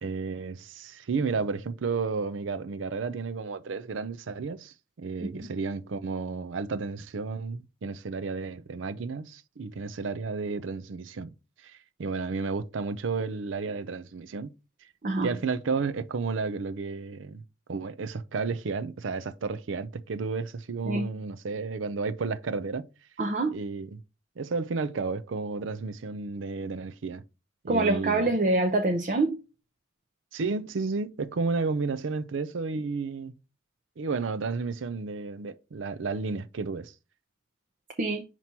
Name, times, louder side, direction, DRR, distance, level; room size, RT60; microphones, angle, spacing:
voice 1, 0.0-11.3 11.6-14.5 15.2-17.4 17.7-22.8 23.5-24.0 24.4-27.2 27.6-28.3 30.3-33.4 34.0-36.9, right 4 dB, 80° right, 0.5 m, -32 dB
voice 2, 23.2-23.5 27.7-29.4 38.0-38.2, right 2 dB, 45° right, 0.7 m, -25 dB
5.9 x 3.0 x 5.3 m
head